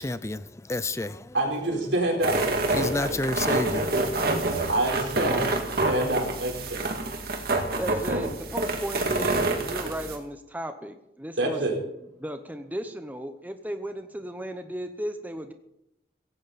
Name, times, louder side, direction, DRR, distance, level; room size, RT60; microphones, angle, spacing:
voice 1, 0.0-1.4 2.7-4.7, left 2 dB, 15° left, 0.4 m, -31 dB
voice 2, 1.3-3.2 4.7-5.6 5.9-6.8 11.4-11.8, right 1 dB, 85° right, 4.0 m, -27 dB
sound 1, 2.2-10.2, right 2 dB, 55° right, 2.3 m, -27 dB
voice 3, 7.8-11.6 12.2-15.5, right 1 dB, 10° right, 0.8 m, -35 dB
17.0 x 15.5 x 4.2 m
head